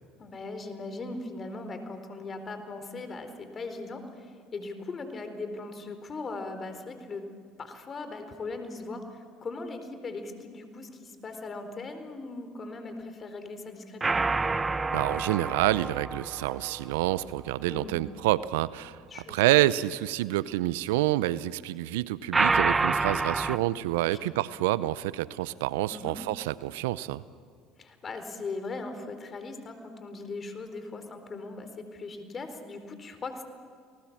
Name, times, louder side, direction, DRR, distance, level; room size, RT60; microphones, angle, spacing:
voice 1, 0.2-7.3 7.6-14.2 17.7-18.0 19.1-19.5 23.9-24.3 25.9-26.1 27.8-33.4, left 3 dB, 35° left, 8 dB, 4.1 m, -39 dB
sound 1, 14.0-17.3 22.3-23.6, right 3 dB, 25° right, 0.9 m, -28 dB
voice 2, 14.9-27.2, right 16 dB, 80° right, 18 dB, 0.6 m, -28 dB
29.0 x 19.5 x 7.4 m, 2.2 s
hypercardioid pair, 70°, 0 cm